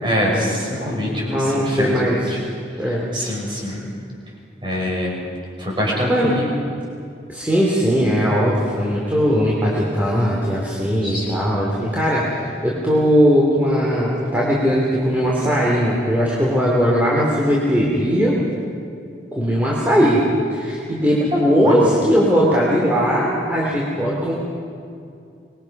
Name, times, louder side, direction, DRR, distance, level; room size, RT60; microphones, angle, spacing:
voice 1, 0.0-2.4 3.1-3.9 4.6-5.1 5.6-6.5 11.0-11.7 21.3-21.9, equal, 25° right, -3 dB, 6.0 m, -24 dB
voice 2, 1.3-2.3 2.8-3.1 6.1-6.4 7.3-18.4 19.3-20.2 20.5-24.3, equal, 10° right, -5 dB, 2.9 m, -19 dB
25.5 x 22.0 x 5.9 m, 2.5 s
head